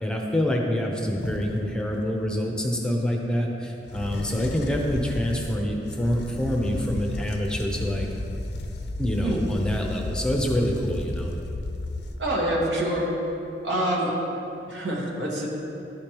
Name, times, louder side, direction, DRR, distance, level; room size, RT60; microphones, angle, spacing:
voice 1, 0.0-8.1 9.0-11.3, equal, 5° left, 0 dB, 0.6 m, -26 dB
sound 1, 1.1-2.2 3.8-12.5, left 2 dB, 70° left, 0.5 m, -34 dB
voice 2, 12.2-13.1 13.6-14.1 14.7-15.5, right 1 dB, 80° right, -3 dB, 1.3 m, -26 dB
11.5 x 5.1 x 3.0 m, 2.8 s
head